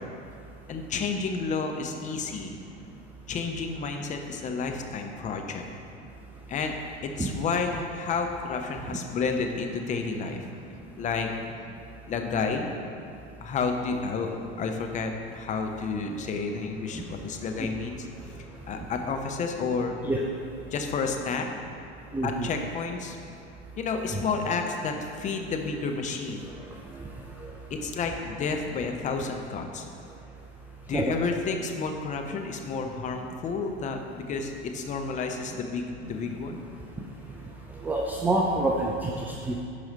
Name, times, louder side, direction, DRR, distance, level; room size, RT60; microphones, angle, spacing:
voice 1, 0.7-2.5 3.3-5.7 6.5-6.7 7.2-10.4 11.0-11.3 12.1-12.7 13.4-14.3 14.6-18.0 18.7-20.0 20.7-21.5 22.2-23.2 23.8-26.5 27.7-29.8 30.9-36.6, left 4 dB, 20° left, 4 dB, 0.7 m, -30 dB
voice 2, 22.1-22.5 24.1-24.2 30.9-31.0 37.8-39.6, right 2 dB, 5° right, -1 dB, 0.3 m, -27 dB
10.5 x 4.9 x 4.1 m, 2.5 s
figure-of-eight pair, 85°, 34 cm